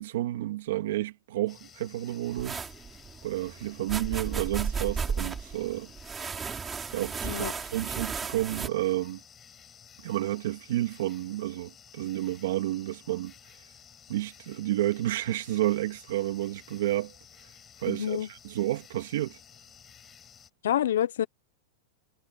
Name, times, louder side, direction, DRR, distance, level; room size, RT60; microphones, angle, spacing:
voice 1, 0.0-2.6 3.2-5.9 6.9-9.2 10.0-13.3 14.1-17.1 17.8-19.4, right 15 dB, 55° right, 2.3 m, -30 dB
sound 1, 1.5-20.5, left 8 dB, 15° left, 7.5 m, -54 dB
sound 2, 2.3-8.7, right 5 dB, 10° right, 5.0 m, -34 dB
voice 2, 17.9-18.3 20.6-21.3, left 11 dB, 75° left, 0.9 m, -27 dB
supercardioid pair, 180°, 0 cm